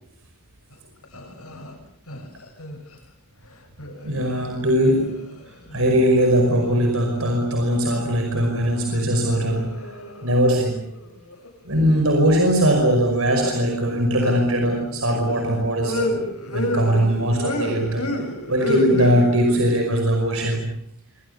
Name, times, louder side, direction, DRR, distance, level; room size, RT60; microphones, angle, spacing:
sound 1, 0.7-0.8 1.0-1.8 2.1-3.0 3.8-5.9 6.2-7.4 7.8-8.8 9.1-11.5 12.6-12.8 13.4-13.8 14.2-19.6, left 1 dB, 90° left, 8.0 m, -31 dB
voice 1, 4.0-9.8 10.2-10.8 11.6-16.2 16.5-18.1 18.5-20.7, equal, 70° right, 3 dB, 5.6 m, -20 dB
27.5 x 25.5 x 6.9 m, 0.72 s
head